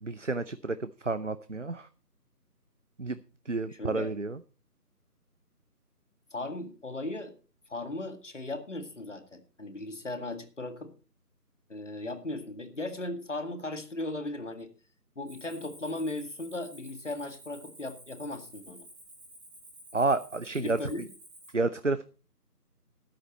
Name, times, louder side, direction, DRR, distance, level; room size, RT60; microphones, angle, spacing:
voice 1, 0.0-1.9 3.0-3.2 3.5-4.4 19.9-20.8 21.5-22.0, right 3 dB, 50° right, 12 dB, 0.7 m, -30 dB
voice 2, 3.7-4.1 6.3-7.3 7.7-10.9 11.7-14.7 15.2-18.9 20.6-21.1, left 2 dB, 50° left, 8 dB, 2.1 m, -37 dB
Cricket, 15.3-21.5, right 1 dB, ahead, 1.9 m, -52 dB
13.0 x 10.0 x 4.4 m, 0.35 s
figure-of-eight pair, 165°, 48 cm